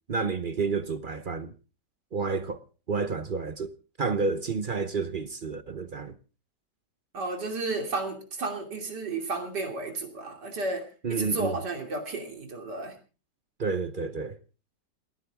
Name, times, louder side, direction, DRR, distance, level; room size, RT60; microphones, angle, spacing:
voice 1, 0.1-1.5 2.1-2.6 2.9-6.2 11.0-11.5 13.6-14.4, right 4 dB, 45° right, 0.7 m, -30 dB
voice 2, 7.1-12.9, right 3 dB, 70° right, 3.4 m, -32 dB
28.5 x 9.9 x 3.6 m
omnidirectional pair, 1.9 m